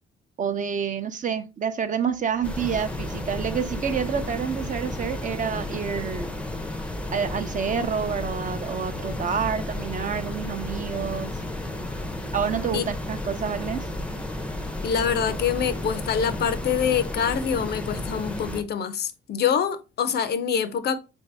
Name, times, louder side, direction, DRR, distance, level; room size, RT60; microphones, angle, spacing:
voice 1, 0.4-6.3 7.1-11.3 12.3-13.9, right 7 dB, 40° right, 0.5 m, -28 dB
sound 1, 2.4-18.6, left 1 dB, 5° left, 0.5 m, -32 dB
voice 2, 14.8-21.0, left 7 dB, 55° left, 0.5 m, -25 dB
3.9 x 2.6 x 3.3 m
cardioid pair, 90°, 20 cm